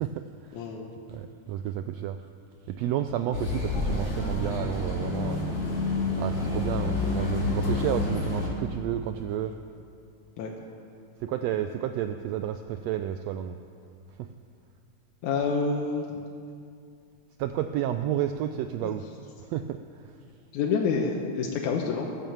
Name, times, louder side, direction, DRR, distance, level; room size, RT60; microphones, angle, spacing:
voice 1, 0.0-0.6 1.1-2.2 2.8-5.5 6.1-9.5 11.2-13.6 14.2-14.3 17.4-19.1 19.4-20.1, right 10 dB, 80° right, 8 dB, 1.5 m, -31 dB
voice 2, 0.5-0.9 10.4-10.5 15.2-16.2 18.8-18.9 20.5-22.1, left 5 dB, 80° left, 0 dB, 2.3 m, -28 dB
sound 1, 3.3-8.5, left 3 dB, 50° left, 3.6 m, -28 dB
14.5 x 11.0 x 7.2 m, 2.4 s
omnidirectional pair, 3.4 m